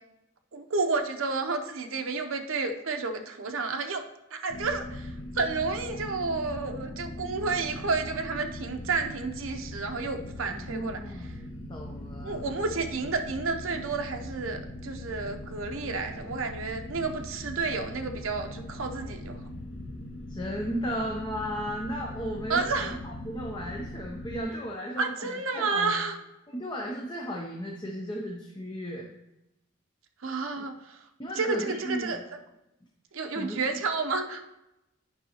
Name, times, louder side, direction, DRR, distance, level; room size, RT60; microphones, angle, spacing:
voice 1, 0.5-4.0 4.3-5.1 5.3-11.0 12.2-19.4 22.5-23.0 25.0-26.2 30.2-31.0 31.4-32.2 33.1-34.4, right 4 dB, 75° right, 5 dB, 0.7 m, -31 dB
sound 1, 4.5-24.4, left 1 dB, 65° left, 0.7 m, -40 dB
voice 2, 10.4-12.6 20.3-26.0 26.5-29.1 30.6-30.7 31.2-32.2 33.4-33.6, equal, 20° left, -1 dB, 0.6 m, -35 dB
9.3 x 5.4 x 2.9 m, 0.90 s
head